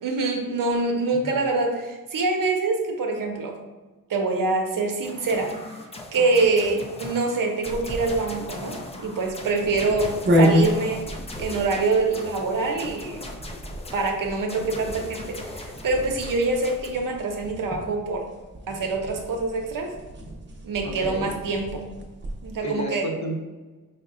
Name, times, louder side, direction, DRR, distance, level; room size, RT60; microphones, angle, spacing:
voice 1, 0.0-3.6 4.1-5.5 6.1-11.1 11.4-13.3 13.9-18.3 18.7-19.9 20.6-21.8 22.4-23.1, right 3 dB, 80° right, 2 dB, 0.7 m, -25 dB
sound 1, 5.0-16.9, left 2 dB, 20° left, 0.3 m, -39 dB
sound 2, 7.6-22.6, equal, 35° right, 0.6 m, -30 dB
voice 2, 20.8-21.3 22.6-23.4, equal, 55° left, 1 dB, 0.8 m, -32 dB
5.0 x 2.1 x 3.6 m, 1.2 s
wide cardioid pair, 140°, 33 cm